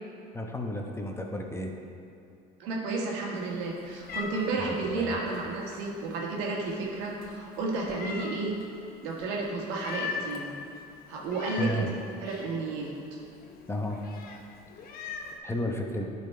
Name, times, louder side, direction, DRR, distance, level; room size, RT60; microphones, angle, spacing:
voice 1, 0.3-1.7 4.6-5.2 11.6-11.9 13.7-14.0 15.4-16.0, left 1 dB, 15° left, 2 dB, 0.9 m, -32 dB
voice 2, 2.6-8.5 9.0-10.5 11.1-11.8 12.2-13.2, right 3 dB, 80° right, -2 dB, 1.5 m, -32 dB
Meow, 3.4-15.4, left 5 dB, 55° left, 0.8 m, -42 dB
10.5 x 4.0 x 4.4 m, 2.6 s
supercardioid pair, 90°, 18 cm